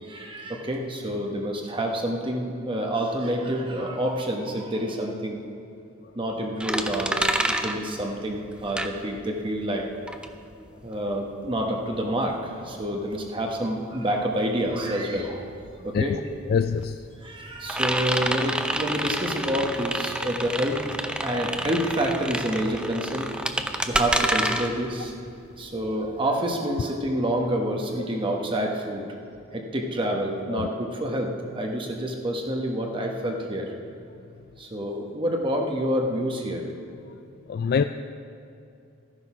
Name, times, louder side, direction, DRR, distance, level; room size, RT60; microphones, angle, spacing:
voice 1, 0.0-5.4 6.1-7.2 7.4-9.9 10.8-16.2 17.2-20.8 21.2-23.4 23.9-25.1 25.6-29.0 29.5-33.7 34.6-36.7, right 1 dB, 25° right, 1 dB, 1.2 m, -28 dB
sound 1, 6.6-9.5 9.8-26.2, right 1 dB, 5° right, 0.6 m, -29 dB
voice 2, 16.5-17.0 30.5-30.7 37.5-37.8, left 6 dB, 50° left, 9 dB, 0.3 m, -24 dB
13.5 x 9.9 x 6.1 m, 2.5 s
head